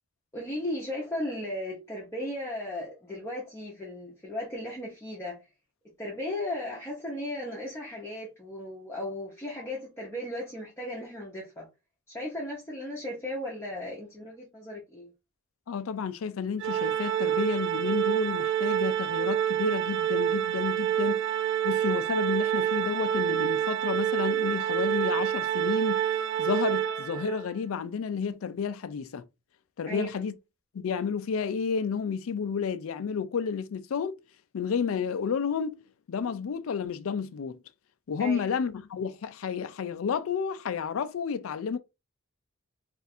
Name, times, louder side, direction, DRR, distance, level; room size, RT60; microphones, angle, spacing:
voice 1, 0.3-5.4 6.0-11.7 12.1-15.1 29.8-30.1 38.2-38.5, left 1 dB, 15° left, 0.8 m, -36 dB
voice 2, 15.7-21.2 21.6-29.2 29.8-30.3 30.7-34.2 34.5-35.8 36.1-37.6 38.1-41.8, left 6 dB, 75° left, 0.4 m, -31 dB
Organ, 16.6-27.5, right 10 dB, 60° right, 0.5 m, -27 dB
2.5 x 2.5 x 4.1 m
head